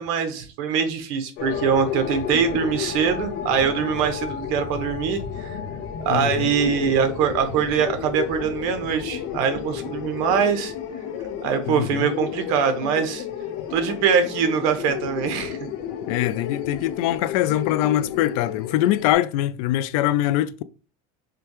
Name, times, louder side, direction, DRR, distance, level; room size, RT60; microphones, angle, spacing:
voice 1, 0.0-5.6 6.0-10.7 11.4-13.2 13.7-15.6, right 7 dB, 75° right, 0.9 m, -23 dB
sound 1, 1.4-19.1, left 8 dB, 65° left, 0.8 m, -32 dB
voice 2, 6.1-6.5 11.7-12.1 16.1-20.6, left 13 dB, 80° left, 0.4 m, -23 dB
5.0 x 2.3 x 2.9 m
cardioid pair, 150°, 18 cm